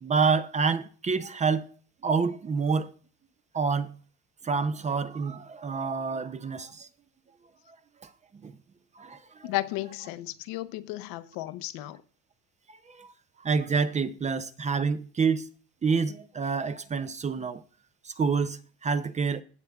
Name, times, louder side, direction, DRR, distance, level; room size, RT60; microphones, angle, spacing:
voice 1, 0.0-1.7 2.0-2.9 3.5-3.9 4.4-6.9 8.4-8.5 9.0-9.5 12.9-13.1 13.4-15.5 15.8-17.6 18.0-19.4, right 5 dB, 20° right, 0.5 m, -27 dB
voice 2, 9.4-12.0, left 17 dB, 75° left, 0.8 m, -34 dB
16.5 x 7.0 x 2.3 m
cardioid pair, 115°, 34 cm